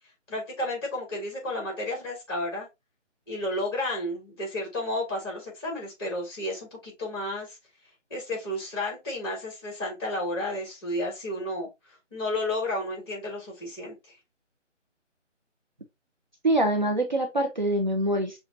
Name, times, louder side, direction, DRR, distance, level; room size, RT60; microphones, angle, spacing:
voice 1, 0.3-2.7 3.3-7.6 8.1-11.7 12.1-14.2, left 1 dB, 20° left, 2.2 m, -32 dB
voice 2, 16.4-18.4, right 1 dB, 40° right, 0.7 m, -24 dB
5.8 x 3.1 x 2.7 m
figure-of-eight pair, 155°, 37 cm